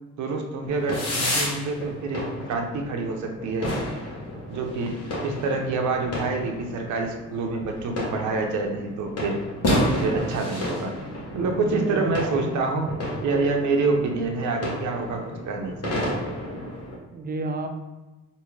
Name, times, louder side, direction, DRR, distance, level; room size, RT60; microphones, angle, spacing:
voice 1, 0.2-3.7 4.5-5.0 5.2-9.4 10.0-10.9 11.3-12.9 13.2-16.2, right 3 dB, 70° right, 3 dB, 0.7 m, -27 dB
sound 1, 0.6-17.0, left 1 dB, 55° left, 1.2 m, -31 dB
voice 2, 11.5-12.3 16.9-17.7, right 2 dB, 30° right, 5 dB, 0.5 m, -32 dB
3.5 x 2.7 x 3.1 m, 1.1 s
cardioid pair, 90°, 30 cm